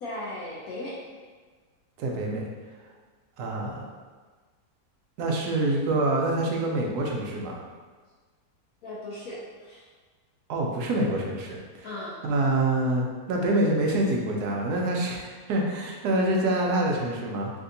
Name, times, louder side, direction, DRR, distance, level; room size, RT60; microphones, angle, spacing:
voice 1, 0.0-1.2 8.8-9.8 11.8-12.2, left 1 dB, 70° left, -6 dB, 0.9 m, -37 dB
voice 2, 2.0-2.5 3.4-3.8 5.2-7.6 10.5-11.9 12.2-17.5, right 1 dB, 75° right, 0 dB, 1.1 m, -26 dB
3.3 x 2.7 x 2.5 m, 1.4 s
omnidirectional pair, 1.8 m